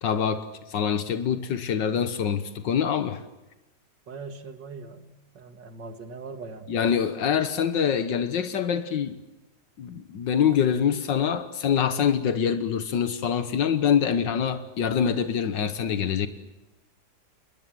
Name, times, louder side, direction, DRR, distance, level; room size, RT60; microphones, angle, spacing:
voice 1, 0.0-3.2 6.7-9.2 9.8-16.3, left 8 dB, 80° left, 11 dB, 1.9 m, -25 dB
voice 2, 4.1-6.7 14.1-14.4 14.8-15.2, right 4 dB, 75° right, 8 dB, 2.7 m, -41 dB
28.5 x 21.5 x 7.7 m, 1.0 s
omnidirectional pair, 1.9 m